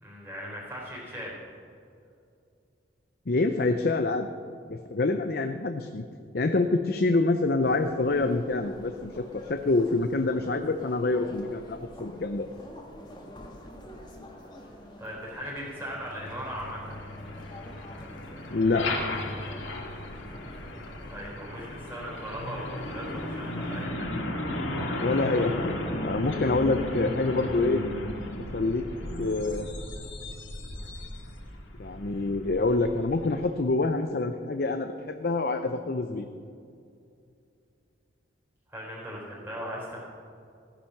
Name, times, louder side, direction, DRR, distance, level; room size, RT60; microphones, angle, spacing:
voice 1, 0.0-1.4 15.0-17.0 21.1-24.0 38.7-40.0, equal, 10° right, -6 dB, 4.1 m, -38 dB
voice 2, 3.3-4.3 4.7-6.0 6.3-12.5 18.5-18.9 25.0-27.8 28.5-28.9 29.2-29.7 31.8-36.3, left 3 dB, 55° left, 6 dB, 0.6 m, -26 dB
sound 1, 7.6-23.8, left 1 dB, 25° left, 1.7 m, -48 dB
Truck, 15.9-33.6, left 1 dB, 85° left, 2.1 m, -35 dB
15.5 x 10.0 x 5.8 m, 2.5 s
head